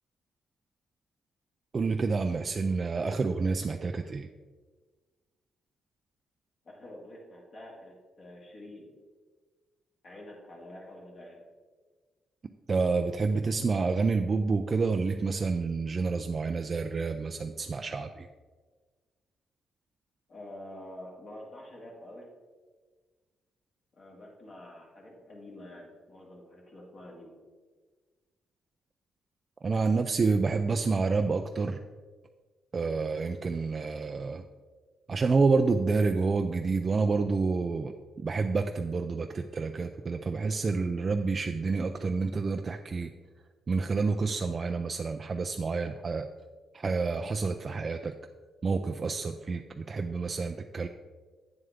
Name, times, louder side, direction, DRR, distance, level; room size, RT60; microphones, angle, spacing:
voice 1, 1.7-4.3 12.7-18.3 29.6-31.8 32.7-34.4 35.1-43.1 43.7-46.3 46.7-48.2 48.6-50.9, right 4 dB, 35° right, 6 dB, 0.3 m, -28 dB
voice 2, 6.6-9.0 10.0-11.4 20.3-22.3 24.0-27.3, left 1 dB, 45° left, -3 dB, 2.0 m, -47 dB
8.9 x 7.3 x 3.5 m, 1.4 s
cardioid pair, 120°, 0 cm